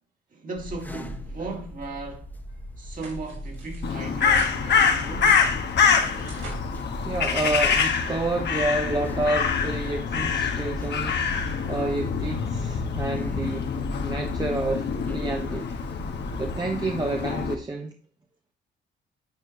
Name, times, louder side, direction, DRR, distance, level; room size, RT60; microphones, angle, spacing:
voice 1, 0.3-2.3 2.8-5.4, right 2 dB, 45° right, 2.3 m, -37 dB
sound 1, 0.5-16.5, equal, 10° left, 1.1 m, -39 dB
sound 2, 2.9-8.2, right 3 dB, 70° right, 3.1 m, -48 dB
Crow, 3.8-17.5, left 6 dB, 60° left, 1.3 m, -25 dB
voice 2, 7.0-11.3 11.7-13.7 14.0-15.7 16.4-17.9, right 2 dB, 20° right, 1.0 m, -29 dB
9.3 x 4.5 x 3.0 m
cardioid pair, 90°, 20 cm